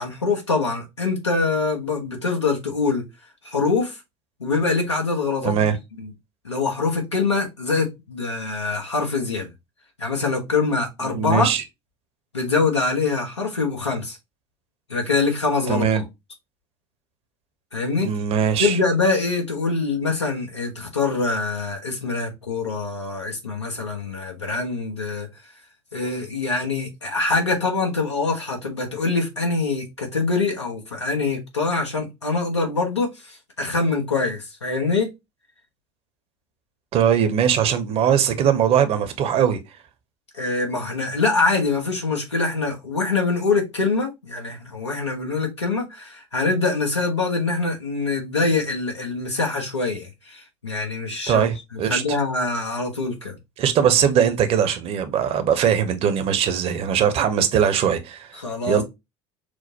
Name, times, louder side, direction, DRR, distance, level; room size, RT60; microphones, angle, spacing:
voice 1, 0.0-3.0 3.4-4.0 4.4-5.7 6.0-6.1 6.4-9.5 10.0-11.5 12.3-14.2 14.9-16.0 17.7-18.1 18.6-25.3 25.9-35.1 40.3-51.5 51.9-53.4 58.4-58.8, left 3 dB, 85° left, 1.1 m, -24 dB
voice 2, 5.4-5.8 11.1-11.6 15.7-16.0 17.9-18.8 36.9-39.6 51.3-52.2 53.6-58.8, right 8 dB, 45° right, 0.8 m, -21 dB
6.1 x 2.1 x 2.8 m
figure-of-eight pair, 65°, 14 cm